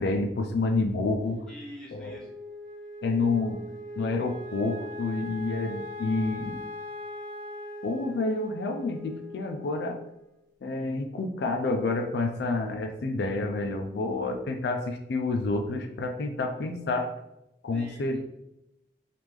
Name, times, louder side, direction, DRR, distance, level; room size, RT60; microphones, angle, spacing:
voice 1, 0.0-1.4 1.9-2.2 3.0-3.6 4.0-6.6 7.8-10.0 10.6-17.1 17.6-18.2, left 3 dB, 75° left, 5 dB, 0.4 m, -29 dB
voice 2, 1.5-2.3 17.7-18.2, left 1 dB, 5° left, -5 dB, 0.7 m, -45 dB
Wind instrument woodwind instrument, 2.0-10.5, left 2 dB, 50° right, 1.0 m, -41 dB
3.5 x 2.5 x 3.0 m, 0.88 s
head